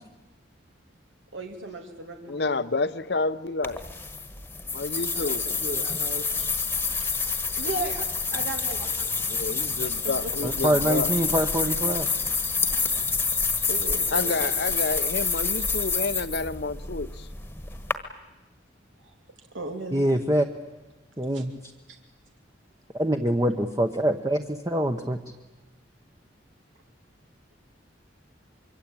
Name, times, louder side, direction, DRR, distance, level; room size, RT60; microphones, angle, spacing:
voice 1, 1.3-2.6 5.1-6.5 7.0-7.1 7.6-8.0 8.3-9.1 9.8-10.5 13.7-14.5 19.0-19.1 19.5-20.0 21.3-21.4, right 2 dB, 85° right, 2.5 m, -36 dB
voice 2, 2.3-3.8 4.7-5.5 9.3-11.1 14.1-17.3, left 3 dB, 60° left, 0.9 m, -29 dB
sound 1, 3.6-17.9, left 4 dB, 10° left, 1.4 m, -28 dB
voice 3, 10.4-12.1 19.9-20.5 21.2-21.5 22.9-25.2, right 1 dB, 20° right, 1.0 m, -24 dB
25.0 x 24.0 x 8.9 m
head